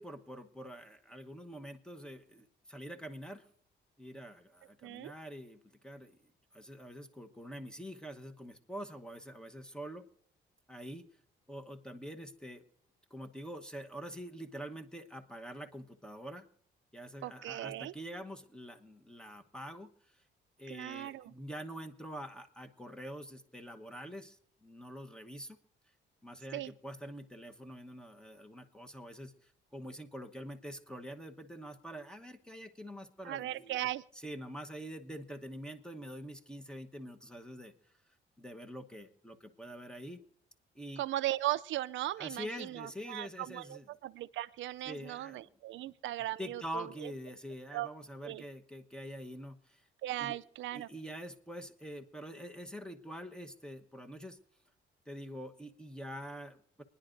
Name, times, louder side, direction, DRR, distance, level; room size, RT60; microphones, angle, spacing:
voice 1, 0.0-3.4 4.0-6.2 6.5-10.1 10.7-11.1 11.5-12.6 13.1-16.5 16.9-20.2 20.6-25.6 26.2-33.8 34.1-37.7 38.4-40.2 40.7-41.0 42.2-43.9 44.8-45.4 45.8-45.9 46.4-49.9 50.2-50.4 50.7-54.4 55.1-56.8, equal, 5° left, 7 dB, 1.1 m, -45 dB
voice 2, 4.8-5.1 17.2-17.9 20.7-21.3 26.5-26.7 33.2-34.0 41.0-47.1 47.7-47.9 48.2-48.4 50.0-50.9, right 15 dB, 75° right, 14 dB, 0.4 m, -38 dB
29.5 x 10.0 x 2.6 m, 0.73 s
cardioid pair, 90°, 20 cm